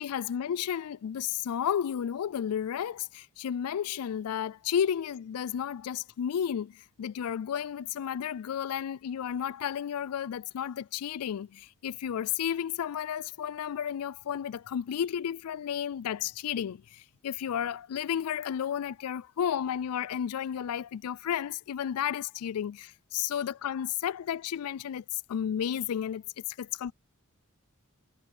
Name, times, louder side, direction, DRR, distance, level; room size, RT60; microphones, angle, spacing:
voice 1, 0.0-26.9, left 9 dB, 80° left, 0.3 m, -32 dB
head